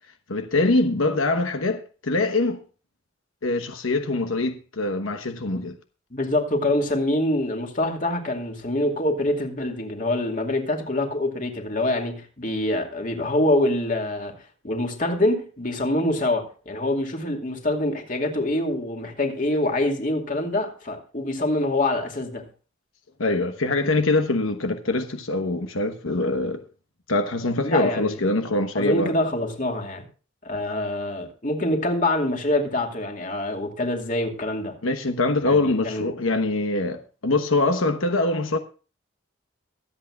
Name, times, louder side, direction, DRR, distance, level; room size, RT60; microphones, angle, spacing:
voice 1, 0.3-2.6 3.4-5.8 23.2-26.6 27.1-29.1 34.8-38.6, left 2 dB, 90° left, 1.1 m, -23 dB
voice 2, 6.1-14.3 14.6-22.4 27.6-28.1 28.7-30.0 30.4-34.7 35.5-36.1, left 1 dB, 40° left, 2.5 m, -25 dB
24.0 x 8.3 x 2.4 m
head